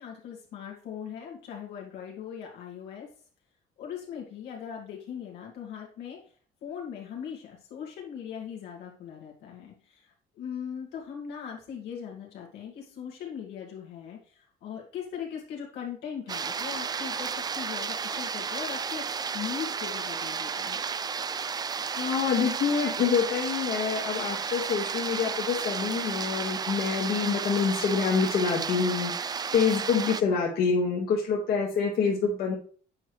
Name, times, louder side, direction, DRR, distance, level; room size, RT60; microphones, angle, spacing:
voice 1, 0.0-3.1 3.8-6.2 6.6-20.8, left 8 dB, 85° left, -2 dB, 2.4 m, -39 dB
sound 1, 16.3-30.2, right 6 dB, 25° right, 0.3 m, -33 dB
voice 2, 22.0-32.5, left 6 dB, 70° left, -3 dB, 2.0 m, -26 dB
8.6 x 4.6 x 3.3 m, 0.42 s
cardioid pair, 110°, 17 cm